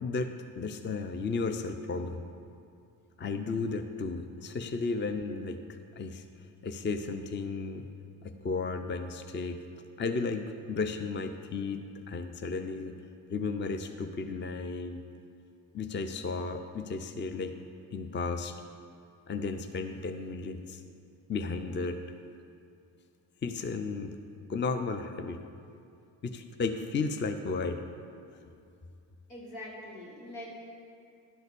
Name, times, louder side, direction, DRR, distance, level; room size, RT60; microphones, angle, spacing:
voice 1, 0.0-2.2 3.2-5.6 6.0-6.2 6.6-7.9 8.2-9.6 10.0-12.9 13.3-15.0 15.7-17.5 17.9-18.5 19.3-20.8 21.3-22.0 23.4-24.1 24.5-25.4 26.2-27.9, left 4 dB, 25° left, 7 dB, 0.6 m, -34 dB
voice 2, 29.3-30.5, left 1 dB, 85° left, -6 dB, 2.2 m, -43 dB
11.0 x 4.0 x 6.9 m, 2.4 s
hypercardioid pair, 50°, 48 cm